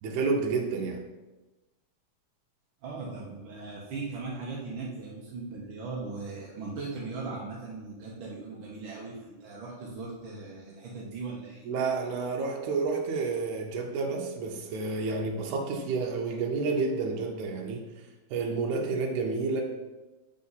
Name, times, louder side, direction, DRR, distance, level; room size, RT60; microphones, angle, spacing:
voice 1, 0.0-1.0 11.7-17.9 18.3-19.6, right 4 dB, 85° right, 0 dB, 2.1 m, -30 dB
voice 2, 2.8-11.7, right 3 dB, 65° right, -4 dB, 1.3 m, -38 dB
7.4 x 4.7 x 4.0 m, 1.1 s
omnidirectional pair, 3.3 m